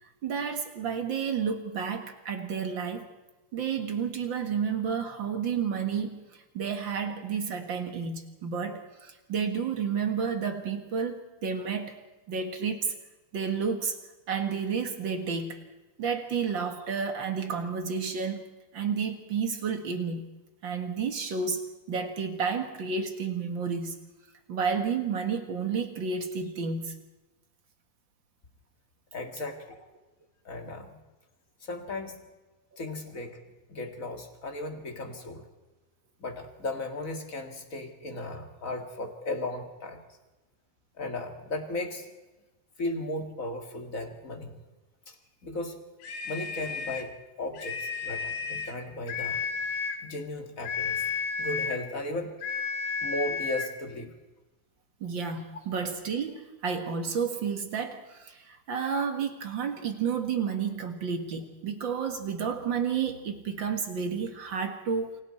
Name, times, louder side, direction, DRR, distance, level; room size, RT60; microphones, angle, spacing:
voice 1, 0.0-3.1 3.5-12.0 12.3-12.9 13.3-14.0 14.3-15.6 16.0-18.5 18.7-20.2 20.6-23.9 24.5-27.0 32.7-32.8 55.0-65.2, right 6 dB, 50° right, 6 dB, 1.5 m, -31 dB
voice 2, 29.1-29.8 30.4-31.0 31.6-32.2 32.8-33.4 33.7-35.4 36.2-40.0 41.0-42.1 42.8-44.6 45.1-45.2 45.4-45.8 46.2-47.1 47.4-49.5 50.0-51.0 51.4-52.3 53.0-54.1, left 2 dB, 30° left, 4 dB, 1.8 m, -36 dB
sound 1, 46.0-47.1 47.5-48.8 49.1-50.0 50.6-51.9 52.4-53.8, left 5 dB, 60° left, 2.5 m, -32 dB
28.5 x 24.5 x 4.4 m, 1.1 s
omnidirectional pair, 4.2 m